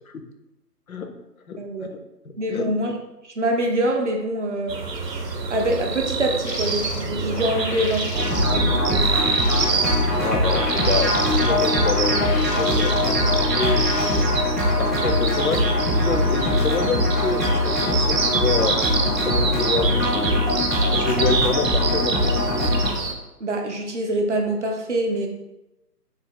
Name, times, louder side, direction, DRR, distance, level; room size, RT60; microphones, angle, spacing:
voice 1, 1.6-1.9 2.4-2.9 3.2-4.8 5.1-5.2 5.5-8.1 8.5-9.3 23.4-25.3, right 1 dB, 45° right, 2 dB, 0.6 m, -25 dB
sound 1, 4.7-23.1, right 4 dB, 80° right, 0.7 m, -26 dB
sound 2, 6.5-14.2, left 3 dB, 90° left, 0.8 m, -34 dB
sound 3, 8.1-22.9, left 1 dB, ahead, 0.4 m, -22 dB
voice 2, 10.2-14.2 14.8-18.8 19.2-20.4 20.9-22.4, left 4 dB, 60° left, 6 dB, 0.6 m, -27 dB
3.2 x 2.8 x 3.7 m, 0.94 s
figure-of-eight pair, 165°, 49 cm